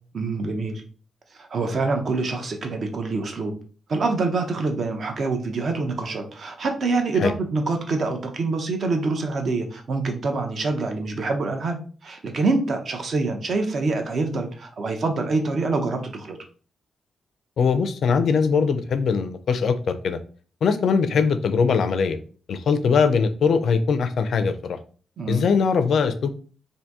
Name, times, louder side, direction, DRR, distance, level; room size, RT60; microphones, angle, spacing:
voice 1, 0.1-0.8 1.4-3.5 3.9-16.4 25.2-25.4, right 3 dB, 50° right, 4 dB, 0.6 m, -25 dB
voice 2, 17.6-20.2 20.6-22.2 22.5-24.8 25.3-26.4, left 5 dB, 65° left, 10 dB, 0.4 m, -21 dB
2.7 x 2.6 x 3.4 m, 0.40 s
wide cardioid pair, 145°, 0 cm